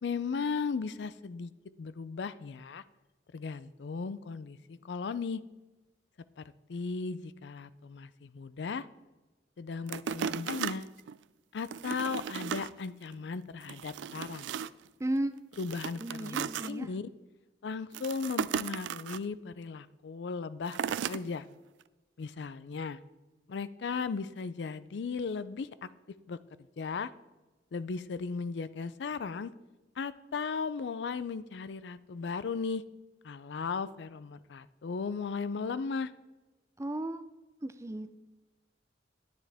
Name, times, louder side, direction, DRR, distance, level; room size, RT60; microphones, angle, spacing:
voice 1, 0.0-1.5 1.8-2.8 3.3-5.4 6.4-6.5 6.7-8.9 9.6-10.9 11.5-14.5 15.6-17.1 17.6-20.8 21.1-21.5 22.2-23.0 23.5-25.9 26.3-26.4 26.8-27.1 27.7-29.5 30.0-32.8 33.2-36.1, left 5 dB, 70° left, 15 dB, 0.4 m, -36 dB
sound 1, 9.9-11.2 11.6-12.7 13.1-13.2 13.6-14.9 15.5-16.7 17.9-19.2 20.7-21.2 21.8-21.9, right 8 dB, 85° right, 0.3 m, -36 dB
voice 2, 15.0-15.4 16.0-16.9 36.8-37.2 37.6-38.1, right 1 dB, 15° right, 12 dB, 0.4 m, -34 dB
10.5 x 10.0 x 3.4 m, 1.1 s
head